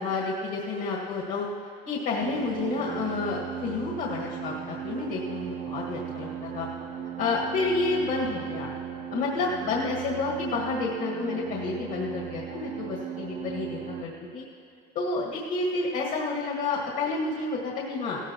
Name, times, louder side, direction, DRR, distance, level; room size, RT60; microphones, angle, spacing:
voice 1, 0.0-1.5 1.9-6.7 7.2-8.7 9.1-14.4 15.0-18.2, left 3 dB, 65° left, -3 dB, 1.8 m, -30 dB
sound 1, 2.2-14.0, right 9 dB, 40° right, 0.6 m, -37 dB
16.5 x 14.0 x 3.0 m, 2.4 s
cardioid pair, 145°, 19 cm